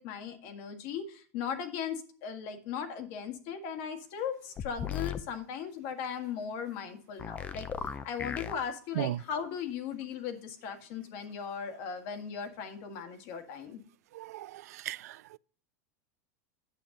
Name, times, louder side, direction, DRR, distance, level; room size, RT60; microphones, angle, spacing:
voice 1, 0.0-7.7 8.0-13.8, left 7 dB, 50° left, 1.7 m, -38 dB
sound 1, 4.6-5.2 7.2-8.5, left 7 dB, 20° left, 0.5 m, -36 dB
voice 2, 14.1-15.4, right 14 dB, 85° right, 0.4 m, -36 dB
9.2 x 7.1 x 3.8 m
supercardioid pair, 150°, 8 cm